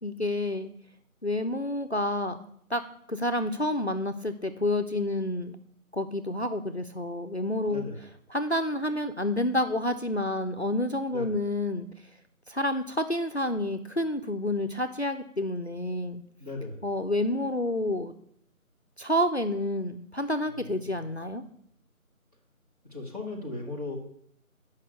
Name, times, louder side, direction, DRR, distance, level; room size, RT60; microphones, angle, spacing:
voice 1, 0.0-0.7 1.2-2.8 3.1-5.6 5.9-7.8 8.3-11.9 12.5-16.2 16.8-18.1 19.0-21.4, left 1 dB, 50° left, 7 dB, 0.5 m, -29 dB
voice 2, 7.7-8.0 11.1-11.4 16.4-16.9 20.4-21.1 22.8-24.0, left 2 dB, 25° right, -4 dB, 1.3 m, -37 dB
6.5 x 5.4 x 6.7 m, 0.68 s
figure-of-eight pair, 175°, 43 cm